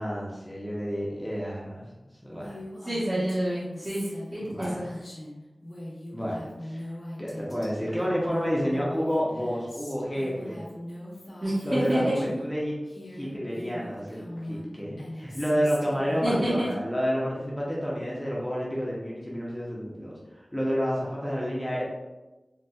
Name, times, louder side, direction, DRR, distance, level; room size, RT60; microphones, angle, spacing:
voice 1, 0.0-1.9 2.2-2.6 4.4-4.8 6.1-6.8 7.2-10.6 11.6-12.7 13.1-20.2 20.5-21.8, equal, 5° left, -5 dB, 0.7 m, -30 dB
Female speech woman speaking, 2.4-12.5 12.8-16.7, left 1 dB, 90° left, 1.0 m, -41 dB
voice 2, 2.8-4.9 11.4-12.2 16.2-16.7, right 1 dB, 40° right, -11 dB, 1.0 m, -28 dB
4.0 x 2.3 x 2.3 m, 1.1 s
wide cardioid pair, 75°, 0 cm